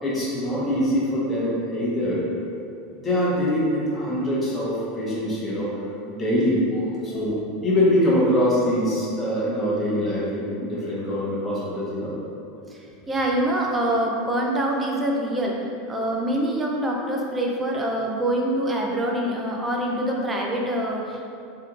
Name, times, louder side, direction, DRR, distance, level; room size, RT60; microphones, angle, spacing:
voice 1, 0.0-2.2 2.9-5.8 6.1-12.1, equal, 25° left, -7 dB, 1.1 m, -24 dB
voice 2, 13.1-15.5 15.9-21.2, right 1 dB, 20° right, -1 dB, 0.5 m, -25 dB
3.3 x 2.9 x 2.4 m, 2.6 s
hypercardioid pair, 105°, 0 cm